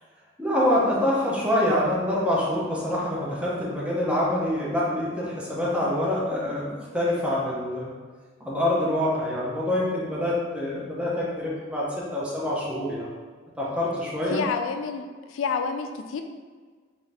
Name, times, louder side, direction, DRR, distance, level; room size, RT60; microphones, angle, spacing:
voice 1, 0.4-7.9 8.4-13.1 13.6-14.4, left 1 dB, 5° right, -6 dB, 0.7 m, -26 dB
voice 2, 14.3-16.2, left 5 dB, 80° left, 6 dB, 0.3 m, -29 dB
3.6 x 2.6 x 3.3 m, 1.5 s
head